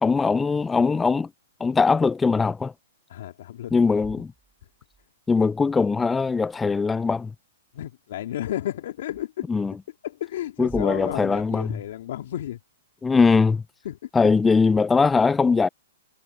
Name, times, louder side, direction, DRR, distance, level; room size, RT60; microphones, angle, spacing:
voice 1, 0.0-1.3 1.6-2.7 3.7-4.3 5.3-7.3 9.5-9.7 10.6-11.8 13.0-13.6 14.1-15.7, left 4 dB, 10° left, 0.3 m, -21 dB
voice 2, 3.1-3.7 7.7-9.5 10.0-12.6 13.8-14.1, left 12 dB, 60° left, 2.9 m, -32 dB
sound 1, 3.7-5.1 6.2-6.9 9.1-9.2 10.5-12.5, right 4 dB, 10° right, 5.9 m, -48 dB
hypercardioid pair, 130°, 0 cm